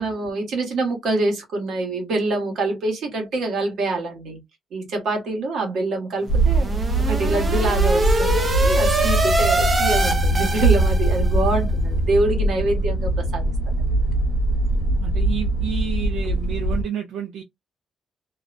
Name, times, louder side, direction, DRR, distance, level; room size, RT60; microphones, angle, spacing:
voice 1, 0.0-4.4 4.7-6.7 7.0-14.0, right 2 dB, 65° right, 1.1 m, -25 dB
sound 1, 6.3-16.8, right 1 dB, 55° left, 0.8 m, -21 dB
sound 2, 6.3-11.3, right 2 dB, 25° right, 0.5 m, -24 dB
voice 2, 15.0-17.4, right 9 dB, 85° right, 0.6 m, -30 dB
2.4 x 2.1 x 2.4 m
cardioid pair, 170°, 0 cm